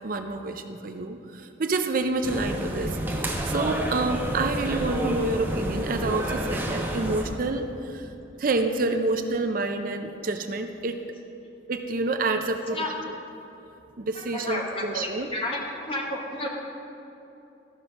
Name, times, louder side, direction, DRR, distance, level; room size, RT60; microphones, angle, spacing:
voice 1, 0.0-8.1 8.4-11.0 11.7-12.8 14.0-15.3, right 3 dB, 50° right, 7 dB, 0.5 m, -28 dB
sound 1, 2.2-7.2, right 1 dB, 10° right, 0.9 m, -29 dB
voice 2, 14.1-16.5, left 1 dB, 30° left, -1 dB, 1.3 m, -31 dB
13.5 x 5.8 x 5.3 m, 2.8 s
head